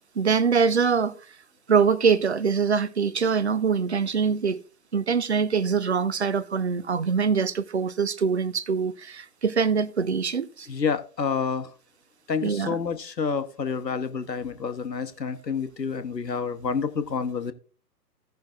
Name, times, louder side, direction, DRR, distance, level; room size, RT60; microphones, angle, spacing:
voice 1, 0.2-1.1 1.7-4.6 4.9-10.7 12.4-12.8, right 6 dB, 45° right, 0.5 m, -23 dB
voice 2, 10.7-11.7 12.3-17.5, left 5 dB, 75° left, 1.1 m, -28 dB
17.0 x 5.8 x 2.4 m
figure-of-eight pair, 130°, 50 cm